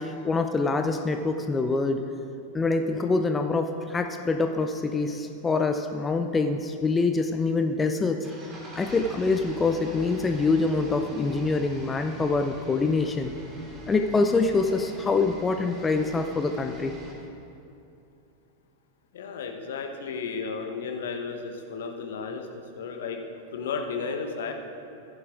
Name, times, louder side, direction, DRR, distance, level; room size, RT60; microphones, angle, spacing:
voice 1, 0.0-2.0 2.5-8.3 8.8-13.3 13.9-16.9, left 3 dB, 15° left, 6 dB, 0.4 m, -25 dB
sound 1, 8.2-17.1, right 1 dB, 20° right, 2.3 m, -44 dB
voice 2, 19.1-23.2 23.5-24.5, left 5 dB, 60° left, 4 dB, 0.9 m, -33 dB
15.0 x 10.5 x 2.5 m, 2.7 s
figure-of-eight pair, 90°, 0 cm